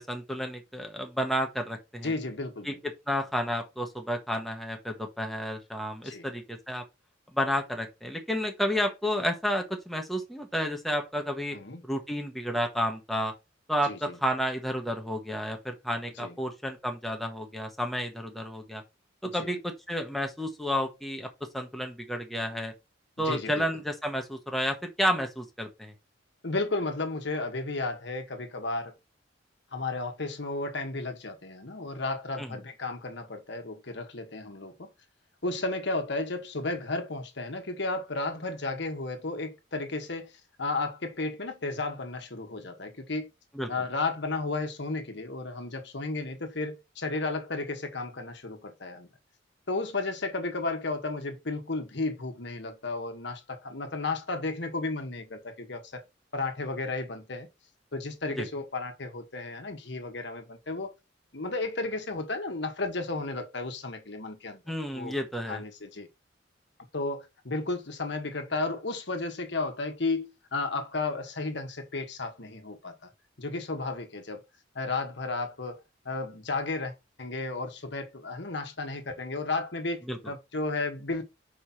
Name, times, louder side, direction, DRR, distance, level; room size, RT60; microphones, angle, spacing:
voice 1, 0.0-2.1 2.6-2.7 3.1-6.8 7.3-11.6 11.8-13.3 13.7-18.8 19.2-21.3 21.5-22.7 23.2-25.9 32.4-32.6 43.5-43.7 58.4-58.5 64.7-65.6 80.1-80.2, equal, ahead, 1.2 m, -31 dB
voice 2, 2.0-2.8 6.0-6.3 11.5-11.8 13.8-14.2 16.2-16.4 19.2-19.6 23.2-23.7 26.4-28.9 29.7-34.9 35.4-40.3 40.6-43.3 43.7-49.1 49.7-56.0 56.3-57.5 57.9-60.9 61.3-64.6 64.9-65.1 65.5-66.1 66.9-73.1 73.4-74.4 74.7-76.9 77.2-81.2, left 3 dB, 65° left, 1.4 m, -33 dB
5.0 x 4.4 x 5.8 m
head